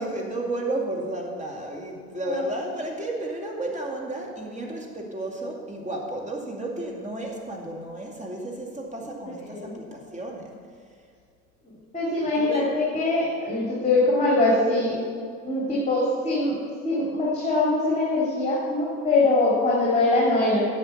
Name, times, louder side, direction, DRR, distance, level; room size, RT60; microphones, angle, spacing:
voice 1, 0.0-10.5 12.3-12.7, right 2 dB, 20° right, 0 dB, 2.3 m, -32 dB
voice 2, 11.9-15.0 15.4-16.6 16.8-20.7, left 2 dB, 15° left, -5 dB, 3.1 m, -23 dB
10.0 x 7.7 x 5.9 m, 2.2 s
hypercardioid pair, 70°, 40 cm